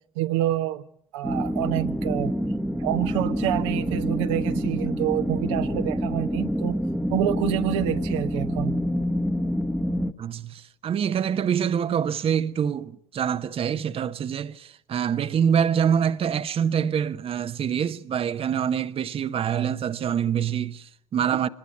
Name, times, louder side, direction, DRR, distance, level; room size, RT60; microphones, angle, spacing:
voice 1, 0.1-0.8 1.1-2.3 2.8-6.8 7.1-8.8, right 13 dB, 65° right, 1.1 m, -27 dB
sound 1, 1.2-10.1, equal, ahead, 1.3 m, -27 dB
voice 2, 10.2-21.5, right 8 dB, 35° right, 1.0 m, -25 dB
25.0 x 21.0 x 9.6 m
figure-of-eight pair, 60°, 17 cm